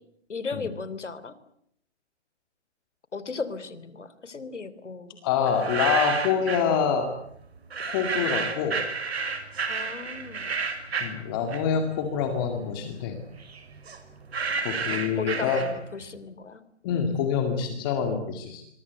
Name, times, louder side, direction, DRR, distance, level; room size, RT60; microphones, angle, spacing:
voice 1, 0.3-1.4 3.1-5.2 9.7-10.5 14.9-16.6, left 4 dB, 80° left, 15 dB, 3.4 m, -36 dB
voice 2, 5.2-7.1 7.8-8.8 11.0-13.2 14.6-15.6 16.8-18.6, left 7 dB, 20° left, 6 dB, 2.1 m, -26 dB
sound 1, 5.5-6.7 7.7-11.9 12.3-16.0, right 5 dB, 60° right, 5.5 m, -31 dB
26.5 x 23.5 x 8.2 m, 0.72 s
hypercardioid pair, 160°, 35 cm